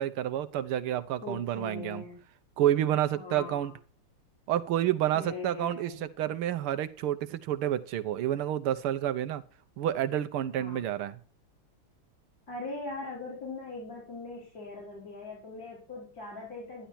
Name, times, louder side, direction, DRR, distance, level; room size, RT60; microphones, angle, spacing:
voice 1, 0.0-2.0 2.6-3.7 4.5-9.4 9.8-11.2, right 11 dB, 85° right, 12 dB, 1.8 m, -29 dB
voice 2, 1.2-2.2 3.1-3.7 5.1-6.0 10.6-10.8 12.5-16.9, left 3 dB, 45° left, -5 dB, 4.8 m, -40 dB
11.5 x 11.5 x 4.3 m, 0.38 s
omnidirectional pair, 2.3 m